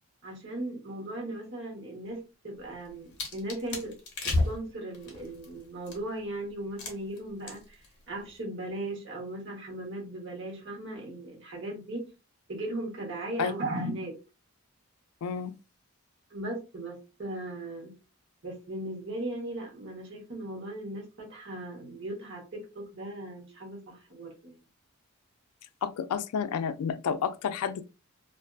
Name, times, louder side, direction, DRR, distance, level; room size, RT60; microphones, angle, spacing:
voice 1, 0.2-3.9 4.2-12.0 12.5-14.1 16.3-17.9 18.4-24.6, right 1 dB, 55° right, 1.0 m, -37 dB
sound 1, 2.6-6.2 6.8-7.2 7.5-7.9 8.1-8.4, left 2 dB, 50° left, 0.8 m, -33 dB
voice 2, 15.2-15.5 25.8-27.8, left 7 dB, 80° left, 0.3 m, -30 dB
2.5 x 2.3 x 2.3 m
head